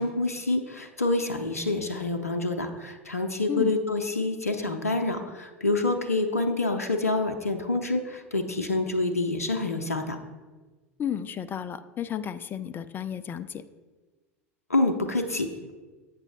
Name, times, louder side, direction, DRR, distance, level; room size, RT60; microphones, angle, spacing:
voice 1, 0.0-10.2 14.7-15.5, left 2 dB, 80° left, 8 dB, 0.5 m, -27 dB
voice 2, 11.0-13.6, left 9 dB, 25° left, 13 dB, 0.3 m, -32 dB
8.0 x 6.8 x 2.8 m, 1.3 s
figure-of-eight pair, 75°, 8 cm